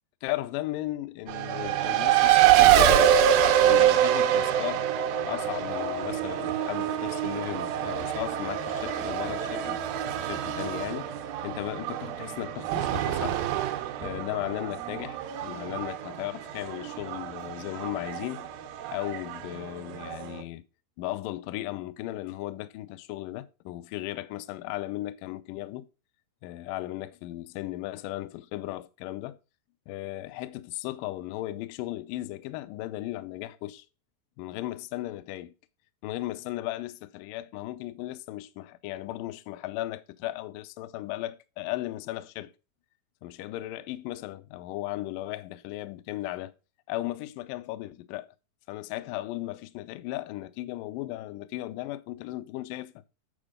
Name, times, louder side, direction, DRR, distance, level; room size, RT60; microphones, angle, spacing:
voice 1, 0.2-2.8 3.6-4.9 5.3-9.8 10.2-11.2 11.4-13.4 14.0-18.5 18.9-20.6 21.0-25.9 26.4-29.4 29.9-33.9 34.4-35.5 36.0-42.5 43.2-46.5 46.9-48.3 48.7-52.9, left 16 dB, 85° left, 1.9 m, -36 dB
Race car auto racing, 1.3-20.4, right 10 dB, 75° right, 2.5 m, -25 dB
8.9 x 4.4 x 5.1 m
omnidirectional pair, 4.6 m